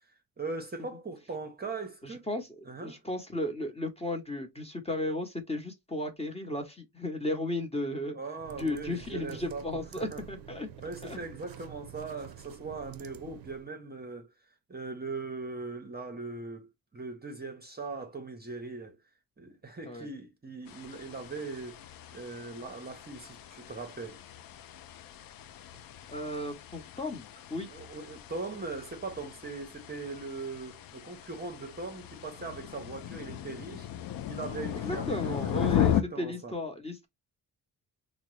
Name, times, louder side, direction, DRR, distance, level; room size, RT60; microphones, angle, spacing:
voice 1, 0.4-2.3 2.6-3.0 8.1-9.7 10.0-10.2 10.8-14.3 14.7-19.0 19.4-21.8 22.1-24.2 27.7-33.9 34.3-36.5, right 3 dB, 25° right, 0.7 m, -40 dB
voice 2, 2.0-8.2 8.6-10.7 11.0-11.2 19.8-20.1 26.1-27.7 34.8-37.1, left 1 dB, 15° left, 0.8 m, -35 dB
sound 1, 8.3-13.7, right 10 dB, 60° right, 0.5 m, -48 dB
sound 2, 20.7-36.0, left 11 dB, 60° left, 0.5 m, -36 dB
3.5 x 2.0 x 3.0 m
cardioid pair, 85°, 40 cm